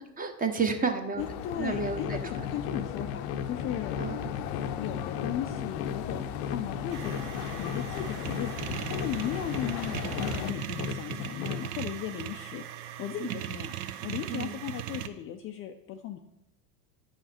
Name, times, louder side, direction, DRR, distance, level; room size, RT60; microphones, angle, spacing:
voice 1, 0.0-1.2 1.6-2.2 4.0-4.3 13.2-13.5 14.3-14.6, right 5 dB, 20° right, 6 dB, 0.9 m, -31 dB
sound 1, 1.2-10.5, left 10 dB, 60° left, 0.7 m, -37 dB
voice 2, 1.2-4.0 4.8-6.2 6.5-13.7 14.0-16.2, left 10 dB, 30° left, 5 dB, 0.4 m, -37 dB
sound 2, 1.7-11.6, left 7 dB, 85° left, 0.9 m, -36 dB
sound 3, 6.9-15.1, right 12 dB, 60° right, 0.7 m, -38 dB
9.5 x 5.6 x 4.2 m, 0.86 s
supercardioid pair, 110°, 46 cm